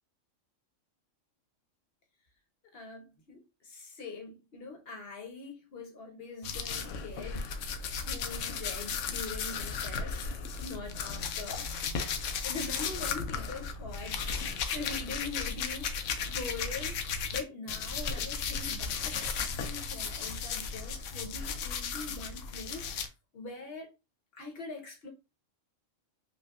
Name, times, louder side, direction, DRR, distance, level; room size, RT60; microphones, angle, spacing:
voice 1, 2.7-7.5 8.0-10.3 10.6-11.7 12.4-14.2 14.7-17.0 17.3-23.1 23.3-23.9 24.3-25.1, left 3 dB, 50° left, 1.1 m, -43 dB
sound 1, 6.4-17.4 17.7-23.1, left 5 dB, 75° left, 0.9 m, -35 dB
5.1 x 2.2 x 2.3 m
omnidirectional pair, 1.3 m